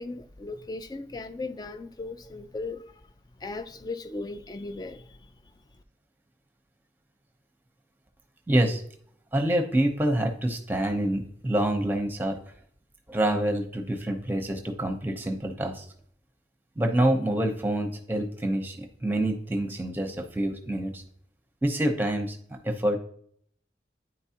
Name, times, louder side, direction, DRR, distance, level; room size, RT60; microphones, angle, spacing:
voice 1, 0.0-3.0 3.4-5.2, left 3 dB, 20° left, 0.4 m, -37 dB
voice 2, 8.5-8.8 9.3-12.4 13.1-15.9 16.8-21.0 21.6-22.4 22.6-23.0, right 1 dB, 10° right, 0.8 m, -26 dB
9.7 x 4.7 x 2.9 m
head